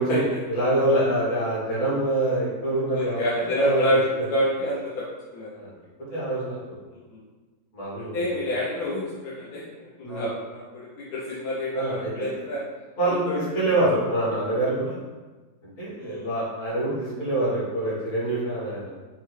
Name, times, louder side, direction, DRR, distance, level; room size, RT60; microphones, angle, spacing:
voice 1, 0.0-3.8 4.2-4.3 5.5-5.7 6.1-6.8 7.7-8.4 10.0-10.3 11.7-12.4 13.0-15.0 15.8-18.9, right 1 dB, 50° left, -8 dB, 1.9 m, -26 dB
voice 2, 2.9-4.0 4.3-5.0 5.3-5.5 8.0-9.6 10.0-12.6 13.1-13.4 16.0-16.3, equal, 65° left, -6 dB, 1.0 m, -27 dB
5.5 x 2.3 x 3.1 m, 1.3 s
omnidirectional pair, 2.0 m